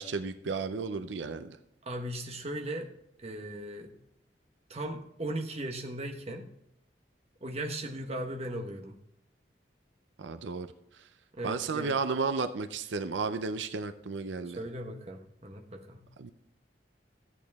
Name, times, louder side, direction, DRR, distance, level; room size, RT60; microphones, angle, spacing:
voice 1, 0.0-1.6 10.2-10.7 10.9-11.1 11.4-14.6 16.2-16.3, right 4 dB, 90° right, 10 dB, 0.6 m, -33 dB
voice 2, 1.8-2.9 3.2-3.9 4.7-6.5 7.4-8.9 11.3-12.0 14.4-16.0, right 1 dB, 35° right, 2 dB, 1.1 m, -37 dB
13.0 x 8.4 x 3.5 m, 0.78 s
head